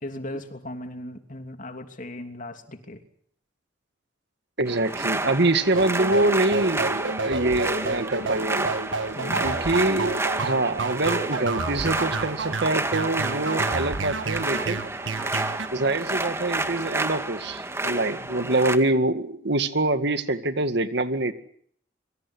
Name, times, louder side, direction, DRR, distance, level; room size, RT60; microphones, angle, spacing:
voice 1, 0.0-3.1 9.1-9.5, left 1 dB, 45° left, 7 dB, 3.0 m, -37 dB
voice 2, 4.6-8.7 9.4-14.8 15.7-21.3, right 2 dB, 60° right, 9 dB, 2.1 m, -25 dB
sound 1, 4.7-18.8, right 2 dB, 15° right, 1.9 m, -30 dB
sound 2, 5.7-15.7, right 3 dB, 80° right, 1.7 m, -30 dB
26.5 x 24.0 x 6.3 m, 0.63 s
head